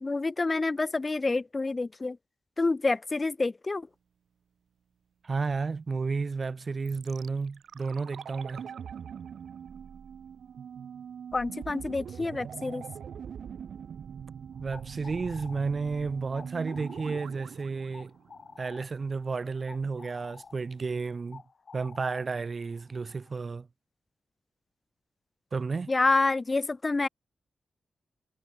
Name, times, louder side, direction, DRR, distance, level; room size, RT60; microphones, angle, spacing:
voice 1, 0.0-2.2 2.6-3.9 11.3-12.8 25.9-27.1, left 3 dB, 25° left, 0.4 m, -28 dB
voice 2, 5.2-8.7 14.6-18.1 18.6-21.4 21.7-23.7 25.5-25.9, right 4 dB, 35° right, 0.5 m, -32 dB
sound 1, 6.9-18.9 19.1-19.2, right 8 dB, 85° right, 2.0 m, -43 dB
sound 2, 14.5-23.4, left 5 dB, 45° left, 5.4 m, -51 dB
wide cardioid pair, 155°, 0 cm